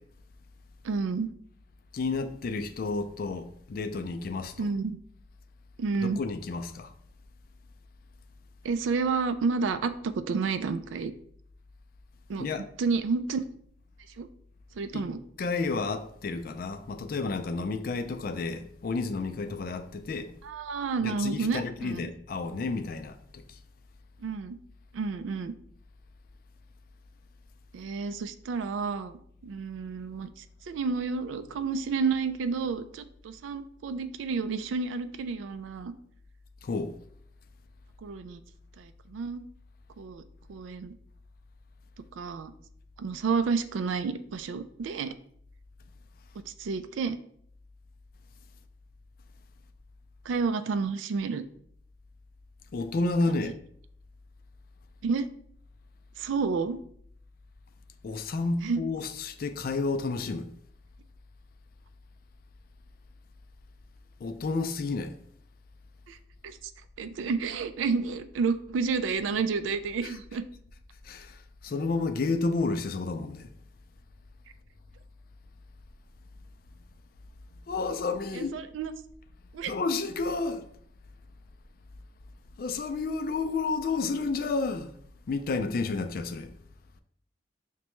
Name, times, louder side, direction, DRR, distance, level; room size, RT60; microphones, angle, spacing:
voice 1, 0.8-1.3 4.6-5.0 5.8-6.2 8.6-11.1 12.3-13.4 14.2-14.3 14.8-15.2 20.4-22.0 24.2-24.6 24.9-25.5 27.7-35.9 38.0-38.4 38.8-39.4 40.0-40.2 40.5-41.0 42.1-42.5 43.0-45.1 46.5-47.2 50.3-51.4 53.3-53.4 55.0-55.3 56.2-56.8 58.6-58.8 66.1-66.2 66.4-66.7 67.0-70.4 78.3-78.9 79.5-79.7, right 4 dB, 90° right, 0.3 m, -30 dB
voice 2, 1.9-4.7 6.0-6.9 12.4-12.7 14.9-15.0 15.4-20.3 21.0-23.6 36.6-37.0 52.7-53.6 58.0-60.5 64.2-65.2 70.0-70.1 71.0-73.5 77.7-78.6 79.6-80.6 82.6-84.9 85.3-86.5, left 3 dB, 50° left, 0.3 m, -31 dB
6.0 x 2.2 x 3.0 m
head